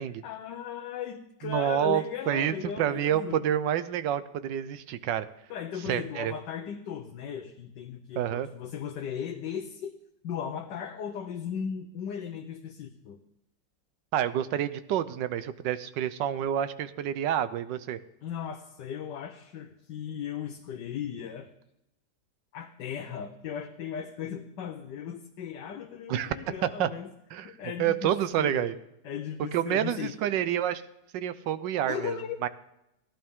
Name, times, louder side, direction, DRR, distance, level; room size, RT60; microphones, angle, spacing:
voice 1, 0.0-3.4 5.5-10.0 10.2-13.2 18.2-21.5 22.5-27.1 27.4-28.8 29.0-30.2 31.9-32.5, left 8 dB, 80° left, 4 dB, 1.4 m, -37 dB
voice 2, 1.4-5.3 5.9-6.3 8.2-8.5 14.1-18.0 26.1-26.3 26.6-26.9 27.3-27.5 27.8-28.7 29.5-30.8 31.1-32.2 32.4-32.5, right 10 dB, 85° right, 14 dB, 1.3 m, -28 dB
16.0 x 11.5 x 3.6 m, 0.85 s
omnidirectional pair, 1.9 m